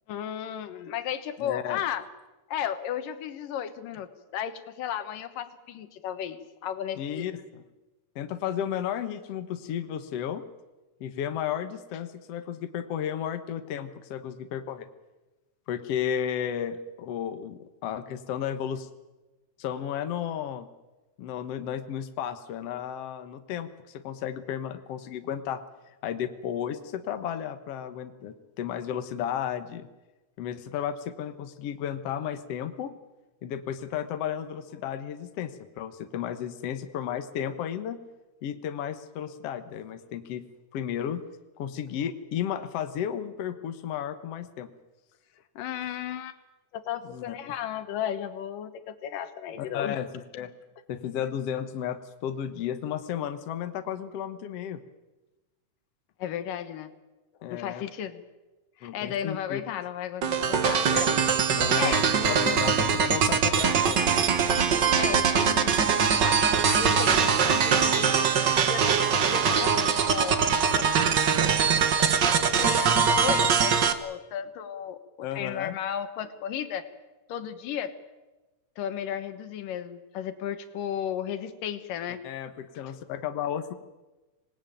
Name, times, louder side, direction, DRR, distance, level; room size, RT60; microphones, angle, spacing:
voice 1, 0.1-2.1 2.5-7.3 45.6-46.3 46.7-50.0 56.2-56.9 57.5-58.2 58.8-61.3 61.6-62.8 64.9-70.4 70.7-70.9 71.4-71.6 72.6-76.9 77.3-77.9 78.8-82.2, left 9 dB, 85° left, 10 dB, 2.9 m, -34 dB
voice 2, 1.4-1.8 7.0-7.6 8.2-10.4 11.0-14.9 15.7-18.9 19.6-20.7 21.2-25.6 26.0-29.9 30.4-32.9 33.4-38.0 38.4-40.4 40.7-41.2 41.6-44.7 47.0-47.4 49.6-50.5 50.9-54.8 57.4-57.8 58.8-59.6 61.5-64.0 75.2-75.8 82.2-83.7, left 9 dB, 55° left, 8 dB, 2.0 m, -33 dB
sound 1, 60.2-73.9, right 6 dB, 55° right, 1.2 m, -22 dB
26.0 x 18.5 x 9.2 m, 1.1 s
omnidirectional pair, 3.8 m